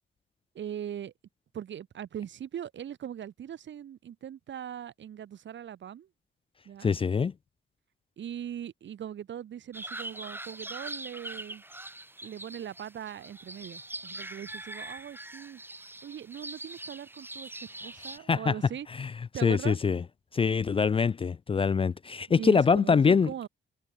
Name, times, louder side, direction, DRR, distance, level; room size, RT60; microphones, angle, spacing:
voice 1, 0.5-1.1 1.5-6.1 6.7-6.9 8.2-11.6 12.2-15.6 16.0-18.9 19.3-19.8 22.4-23.5, right 9 dB, 60° right, 2.2 m, -40 dB
voice 2, 6.8-7.3 18.3-18.5 19.0-19.1 19.4-20.0 20.3-23.5, left 5 dB, 25° left, 0.4 m, -24 dB
sound 1, 9.7-18.2, right 2 dB, 10° right, 4.7 m, -42 dB
wide cardioid pair, 145°, 21 cm